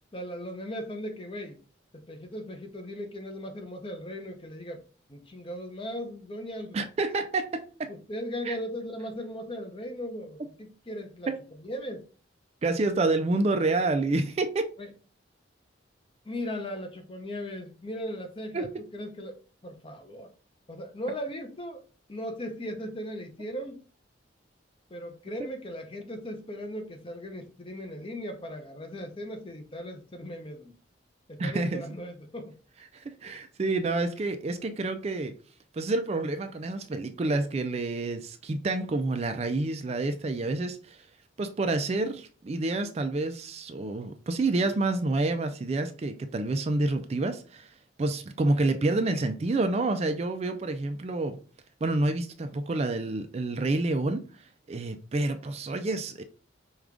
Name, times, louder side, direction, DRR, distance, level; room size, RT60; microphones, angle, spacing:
voice 1, 0.1-1.6 1.9-4.8 5.1-6.8 7.9-11.3 11.6-12.1 14.8-14.9 16.3-19.4 19.6-20.3 20.7-21.8 22.1-23.8 24.9-30.8 31.3-32.5, equal, 30° left, 0.6 m, -38 dB
voice 2, 6.7-7.9 8.5-8.6 11.3-11.4 12.6-14.7 18.5-18.7 31.4-31.8 32.9-35.4 35.7-41.1 41.4-51.4 51.8-54.4 54.7-56.2, right 2 dB, 35° right, 0.3 m, -28 dB
4.8 x 2.3 x 3.6 m
head